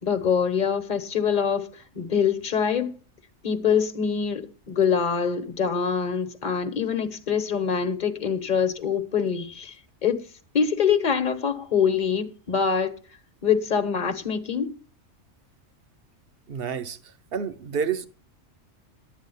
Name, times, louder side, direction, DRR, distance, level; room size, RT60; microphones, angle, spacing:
voice 1, 0.0-1.7 1.9-2.9 3.4-9.7 10.0-10.2 10.5-12.9 13.4-14.7, left 7 dB, 40° left, 1.3 m, -24 dB
voice 2, 16.5-18.1, right 7 dB, 55° right, 1.1 m, -30 dB
11.5 x 8.8 x 5.6 m
omnidirectional pair, 1.3 m